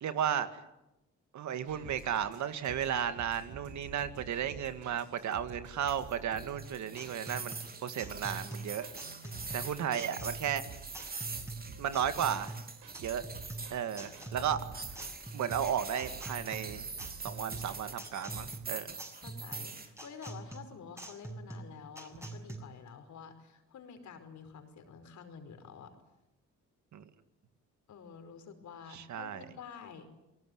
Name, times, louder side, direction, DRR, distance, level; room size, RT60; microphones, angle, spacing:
voice 1, 0.0-0.6 1.3-7.6 7.8-8.9 9.5-10.6 11.8-12.6 13.0-13.2 13.7-14.6 15.3-16.9 17.2-19.0 26.9-27.0 28.9-29.4, right 9 dB, 70° right, 10 dB, 2.1 m, -34 dB
sound 1, 1.7-18.5, right 5 dB, 85° right, 5.9 m, -51 dB
sound 2, 5.9-19.9, right 4 dB, 30° right, 3.3 m, -44 dB
sound 3, 6.6-22.6, right 2 dB, 10° right, 6.4 m, -45 dB
voice 2, 9.2-9.7 14.3-14.5 19.2-25.9 27.9-30.1, left 6 dB, 70° left, 8 dB, 5.1 m, -49 dB
28.0 x 19.0 x 9.6 m, 0.93 s
cardioid pair, 90°, 30 cm